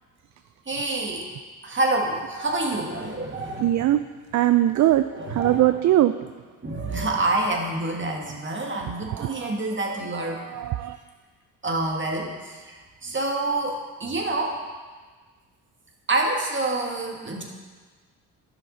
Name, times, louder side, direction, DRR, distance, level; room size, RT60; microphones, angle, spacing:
voice 1, 0.7-1.3 1.6-3.9 4.7-4.8 5.1-5.7 6.6-10.4 11.6-14.6 16.1-17.4, right 2 dB, 30° right, 0 dB, 1.9 m, -27 dB
voice 2, 3.6-4.0 4.3-5.0 5.3-6.1 9.1-9.5 10.4-11.0, right 13 dB, 45° right, 10 dB, 0.4 m, -21 dB
12.0 x 5.8 x 4.0 m, 1.4 s
supercardioid pair, 60°, 39 cm